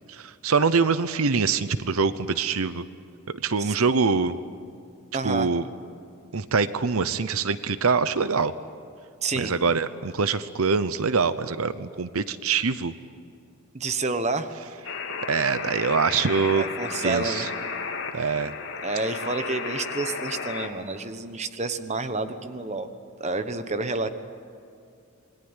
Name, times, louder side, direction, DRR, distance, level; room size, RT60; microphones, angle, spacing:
voice 1, 0.1-2.8 3.4-4.3 5.2-5.6 6.3-8.5 9.3-12.9 15.3-16.6 17.0-17.5 18.1-18.5, right 5 dB, 75° right, 13 dB, 0.8 m, -24 dB
voice 2, 5.1-5.5 9.2-9.5 13.7-14.5 16.5-17.4 18.2-18.4 18.8-22.9 23.2-24.1, right 3 dB, 30° right, 9 dB, 1.2 m, -29 dB
sound 1, 14.8-20.7, left 5 dB, 55° left, 2.8 m, -33 dB
27.5 x 21.5 x 9.8 m, 2.4 s
head